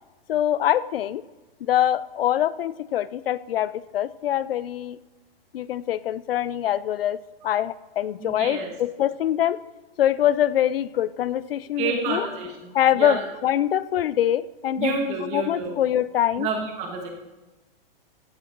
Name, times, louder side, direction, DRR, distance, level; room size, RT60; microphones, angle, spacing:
voice 1, 0.3-1.2 1.6-5.0 5.5-7.2 7.4-9.6 10.0-12.3 12.7-16.5, left 11 dB, 75° left, 18 dB, 0.6 m, -24 dB
voice 2, 8.2-8.7 11.8-13.2 14.8-15.7 16.4-17.1, right 4 dB, 25° right, 3 dB, 1.7 m, -29 dB
15.5 x 8.5 x 4.6 m, 1.1 s
hypercardioid pair, 160°, 29 cm